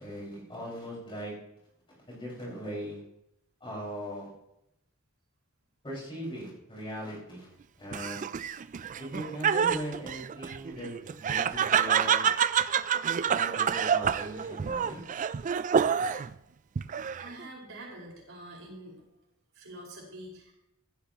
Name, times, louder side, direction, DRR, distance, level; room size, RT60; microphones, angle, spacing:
voice 1, 0.0-1.3 2.1-3.0 3.6-4.3 5.8-7.5 7.8-8.2 9.0-12.2 13.3-15.2, equal, 25° left, -5 dB, 5.5 m, -39 dB
Laughter, 7.9-16.3 16.8-17.4, right 7 dB, 35° right, 0.4 m, -28 dB
voice 2, 17.2-19.0 19.5-20.5, right 1 dB, 75° right, -3 dB, 5.3 m, -45 dB
15.5 x 13.5 x 3.0 m, 0.83 s
head